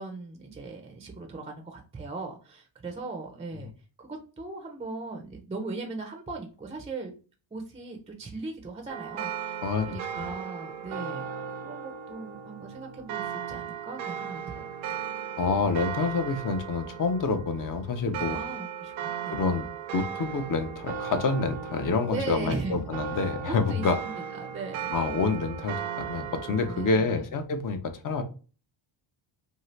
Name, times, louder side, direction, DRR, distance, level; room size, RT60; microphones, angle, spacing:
voice 1, 0.0-3.7 4.0-7.1 7.5-15.0 18.2-19.4 22.1-22.8 23.1-24.9 26.6-27.2, right 3 dB, 15° right, 2 dB, 0.4 m, -39 dB
sound 1, 8.9-26.9, right 8 dB, 70° right, 0.6 m, -37 dB
voice 2, 9.6-10.3 15.4-18.4 19.2-19.7 19.9-24.0 24.9-28.2, left 4 dB, 45° left, 7 dB, 0.6 m, -28 dB
2.7 x 2.4 x 3.1 m, 0.36 s
cardioid pair, 115°, 48 cm